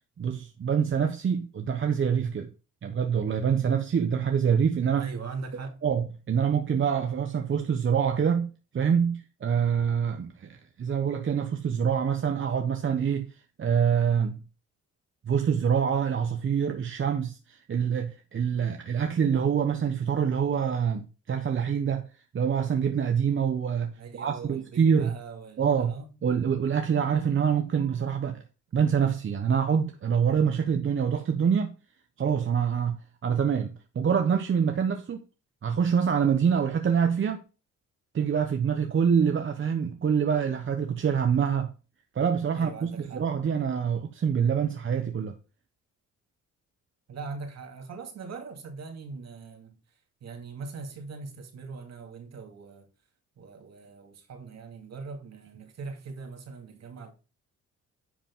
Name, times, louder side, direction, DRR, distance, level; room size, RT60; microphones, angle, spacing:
voice 1, 0.2-2.5 2.8-5.1 5.8-13.3 13.6-14.4 15.3-22.1 22.3-25.1 25.6-25.9 26.2-28.4 28.7-31.7 32.2-33.0 33.2-35.2 35.6-37.4 38.1-41.7 42.1-45.3, right 7 dB, 40° right, 1.0 m, -25 dB
voice 2, 4.9-5.8 24.0-26.1 42.5-43.3 47.1-49.7 50.2-52.9 53.4-57.1, right 4 dB, 60° right, 2.3 m, -41 dB
10.0 x 5.1 x 3.7 m
cardioid pair, 90°, 30 cm